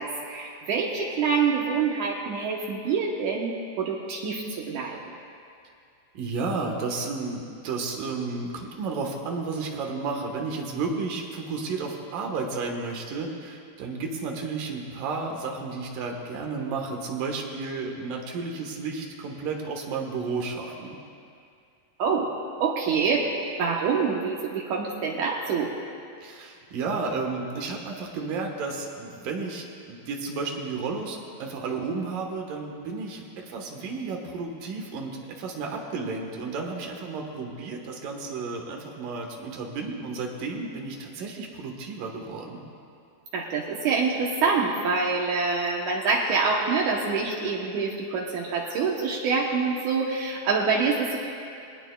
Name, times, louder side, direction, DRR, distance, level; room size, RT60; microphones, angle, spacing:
voice 1, 0.0-5.0 22.0-22.3 22.6-23.3 23.6-25.7 43.3-51.2, right 5 dB, 80° right, -2 dB, 1.7 m, -26 dB
voice 2, 6.1-20.9 26.2-42.6, right 4 dB, 65° right, 1 dB, 2.6 m, -32 dB
21.0 x 18.0 x 2.3 m, 2.4 s
omnidirectional pair, 4.8 m